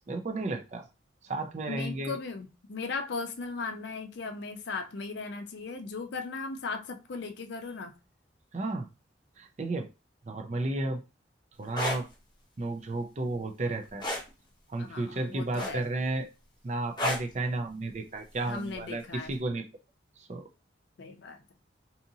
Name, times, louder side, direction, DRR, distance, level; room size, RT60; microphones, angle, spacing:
voice 1, 0.1-0.9 1.2-2.2 8.5-8.9 9.4-9.9 10.3-11.0 11.6-12.1 12.6-14.1 14.7-16.3 16.6-19.6 20.2-20.5, right 2 dB, 35° right, 0.4 m, -33 dB
voice 2, 1.7-8.0 14.8-15.8 18.5-19.4 21.0-21.4, left 4 dB, 70° left, 0.5 m, -37 dB
sound 1, 11.6-12.0 14.0-14.3 15.6-16.0 17.0-17.3 18.7-18.9, left 1 dB, 25° left, 0.6 m, -30 dB
2.7 x 2.5 x 2.7 m
head